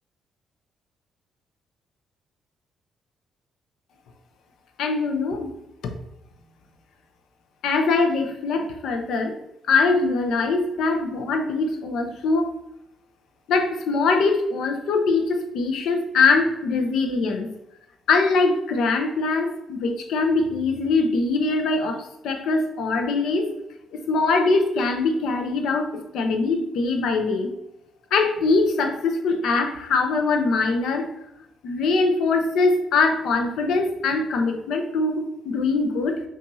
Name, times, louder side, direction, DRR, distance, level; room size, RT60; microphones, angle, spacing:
voice 1, 4.8-5.5 5.8-5.9 7.6-9.4 9.7-12.5 13.5-17.5 18.1-23.5 23.9-27.5 28.1-31.1 31.6-36.2, left 3 dB, 80° left, 5 dB, 0.7 m, -22 dB
5.6 x 2.5 x 2.7 m, 0.84 s
cardioid pair, 90°, 0 cm